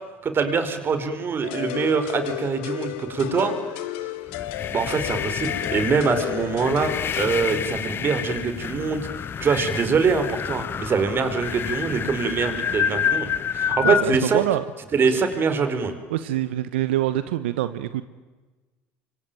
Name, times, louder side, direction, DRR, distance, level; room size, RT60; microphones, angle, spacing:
voice 1, 0.2-3.8 4.7-9.1 9.4-14.4 14.9-15.9, right 5 dB, 40° right, 9 dB, 4.7 m, -24 dB
sound 1, 1.4-7.6, left 15 dB, 75° left, 2.0 m, -33 dB
sound 2, 4.3-14.1, left 8 dB, 40° left, 1.0 m, -28 dB
voice 2, 13.8-14.6 16.1-18.0, right 13 dB, 85° right, 13 dB, 1.0 m, -25 dB
26.0 x 24.5 x 9.2 m, 1.3 s
hypercardioid pair, 80°, 6 cm